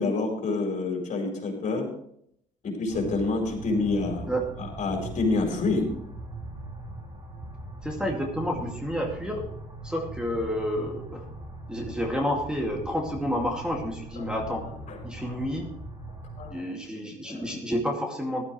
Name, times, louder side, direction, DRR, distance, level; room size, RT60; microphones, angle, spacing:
voice 1, 0.0-1.9 2.6-4.3 4.6-5.9 14.2-14.3 14.9-15.0 16.4-16.6 17.2-17.4, left 3 dB, 50° left, 2 dB, 4.8 m, -27 dB
sound 1, 2.9-16.5, right 2 dB, 25° right, 2.8 m, -40 dB
voice 2, 7.8-9.5 9.8-11.2 11.7-14.7 15.0-15.7 16.5-18.4, equal, 5° right, 1 dB, 2.4 m, -30 dB
15.0 x 12.5 x 3.2 m, 0.70 s
cardioid pair, 95°, 16 cm